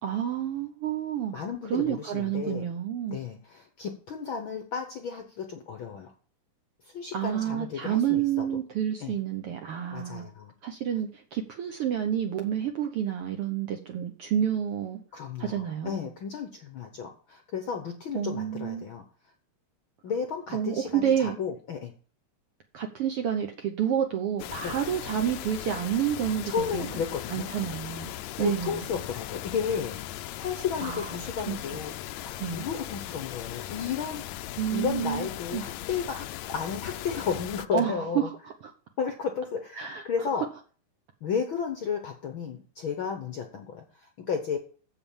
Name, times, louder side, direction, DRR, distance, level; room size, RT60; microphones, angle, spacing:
voice 1, 0.0-1.4 1.7-3.2 7.1-10.3 10.6-15.0 15.4-16.1 18.1-18.9 20.5-21.4 22.7-26.9 27.3-28.1 28.4-28.8 30.8-31.1 31.5-31.6 32.4-32.7 34.6-35.6 37.7-38.5 39.8-40.0, right 9 dB, 65° right, 1.5 m, -29 dB
voice 2, 1.3-2.6 3.1-6.1 6.8-8.5 9.0-9.2 9.9-10.5 15.1-19.0 20.0-21.9 24.6-24.7 26.4-27.5 28.4-31.9 32.2-34.2 34.7-38.3 39.0-40.4 41.2-44.6, left 6 dB, 65° left, 1.3 m, -33 dB
sound 1, 24.4-37.7, left 14 dB, 80° left, 1.7 m, -38 dB
7.6 x 7.0 x 7.2 m
omnidirectional pair, 3.6 m